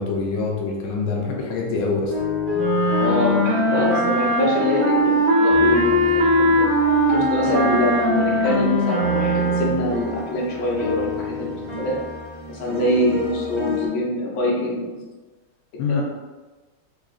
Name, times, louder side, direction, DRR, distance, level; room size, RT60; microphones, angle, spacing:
voice 1, 0.0-2.1 15.8-16.0, left 4 dB, 80° left, -1 dB, 1.4 m, -24 dB
sound 1, 2.1-5.1 5.4-13.9, left 6 dB, 35° right, 1.2 m, -30 dB
sound 2, 2.5-9.9, equal, 60° right, 0.7 m, -20 dB
voice 2, 3.0-11.9 12.5-15.0 15.9-16.0, left 1 dB, 60° left, -4 dB, 1.1 m, -24 dB
3.8 x 3.0 x 2.4 m, 1.2 s
omnidirectional pair, 2.2 m